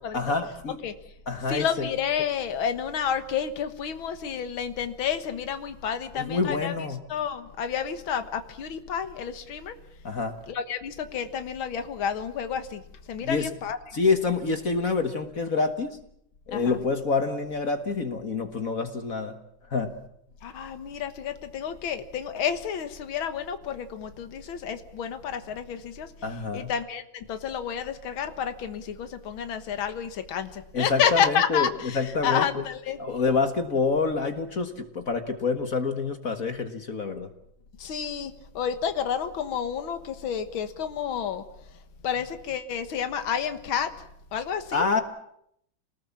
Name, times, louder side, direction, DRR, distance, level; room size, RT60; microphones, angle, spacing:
voice 1, 0.1-0.8 1.3-1.9 6.2-7.0 10.0-10.4 13.2-13.5 13.9-16.0 16.5-19.4 19.7-19.9 26.2-26.7 30.7-31.7 31.9-32.5 33.0-37.3 44.7-45.0, left 4 dB, 45° left, 8 dB, 1.8 m, -27 dB
voice 2, 1.5-6.7 7.1-9.8 10.5-12.8 13.1-14.0 16.5-16.8 20.4-26.1 26.5-33.0 37.8-41.4 42.0-43.9 44.3-44.9, left 8 dB, 75° left, 9 dB, 2.2 m, -30 dB
27.5 x 19.5 x 7.2 m, 0.73 s
omnidirectional pair, 2.3 m